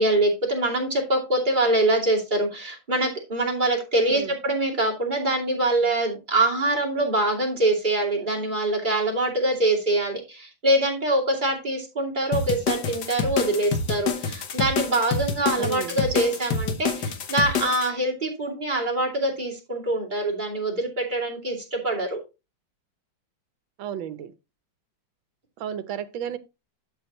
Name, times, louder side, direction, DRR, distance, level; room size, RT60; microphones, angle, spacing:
voice 1, 0.0-22.2, right 1 dB, 20° right, 2.6 m, -24 dB
sound 1, 12.3-17.9, left 5 dB, 60° left, 1.6 m, -27 dB
voice 2, 15.6-15.9 23.8-24.3 25.6-26.4, right 9 dB, 75° right, 1.5 m, -32 dB
12.0 x 5.7 x 3.0 m
omnidirectional pair, 2.2 m